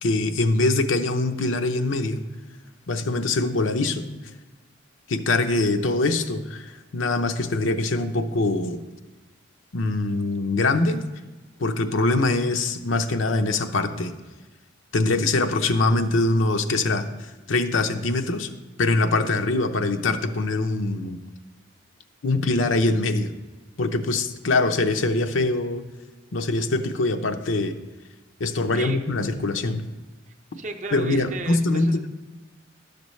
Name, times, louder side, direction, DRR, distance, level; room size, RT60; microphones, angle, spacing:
voice 1, 0.0-2.2 2.9-4.0 5.1-8.8 9.7-11.0 11.6-14.1 14.9-18.5 18.8-21.2 22.2-23.3 23.8-25.8 26.3-27.8 28.4-29.9 30.9-32.1, left 2 dB, 85° left, 7 dB, 0.7 m, -23 dB
voice 2, 30.6-32.1, right 3 dB, 40° right, 6 dB, 0.6 m, -34 dB
12.0 x 6.7 x 3.1 m, 1.2 s
head